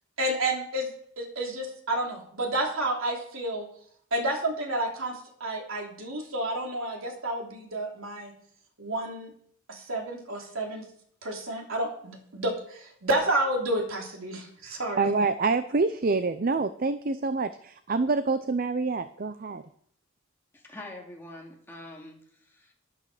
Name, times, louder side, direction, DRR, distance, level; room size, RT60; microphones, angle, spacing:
voice 1, 0.2-0.9 1.2-3.7 4.1-8.3 8.8-9.3 9.7-10.8 11.2-15.1, right 1 dB, 80° right, 1 dB, 3.1 m, -30 dB
voice 2, 15.0-19.6, right 3 dB, 45° right, 12 dB, 0.5 m, -26 dB
voice 3, 20.5-22.7, left 1 dB, 10° left, -1 dB, 2.6 m, -45 dB
12.5 x 11.5 x 5.0 m, 0.64 s
head